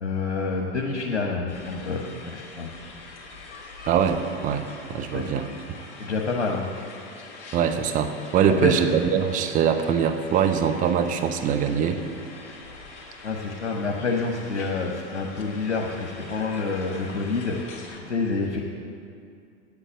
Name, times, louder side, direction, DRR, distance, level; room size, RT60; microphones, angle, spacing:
voice 1, 0.0-2.7 5.1-5.2 6.0-6.7 8.6-8.8 13.2-17.5 18.0-18.6, left 4 dB, 80° left, 0 dB, 1.1 m, -28 dB
sound 1, 1.5-18.0, left 3 dB, 35° left, 2.1 m, -44 dB
voice 2, 3.9-5.5 7.5-12.0, right 7 dB, 25° right, 7 dB, 0.7 m, -23 dB
8.7 x 8.2 x 8.8 m, 2.4 s
figure-of-eight pair, 90°, 34 cm